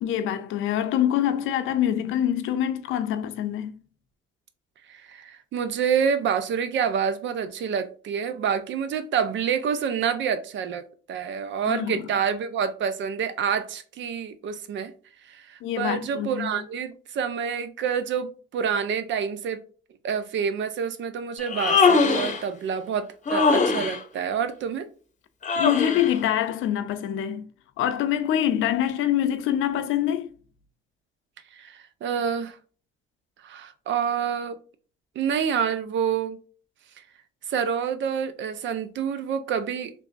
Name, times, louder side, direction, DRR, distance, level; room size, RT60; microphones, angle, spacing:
voice 1, 0.0-3.7 11.7-12.0 15.6-16.5 25.6-27.5 27.8-30.3, left 11 dB, 85° left, 0.5 m, -25 dB
voice 2, 4.9-10.8 11.1-14.9 15.2-19.6 20.0-24.9 31.5-32.6 33.4-34.6 35.2-36.4 37.5-39.9, right 7 dB, 70° right, 0.6 m, -27 dB
Human voice, 21.4-22.4 23.3-24.0 25.4-26.1, left 4 dB, 40° left, 0.8 m, -21 dB
3.2 x 3.1 x 2.6 m
cardioid pair, 90°, 20 cm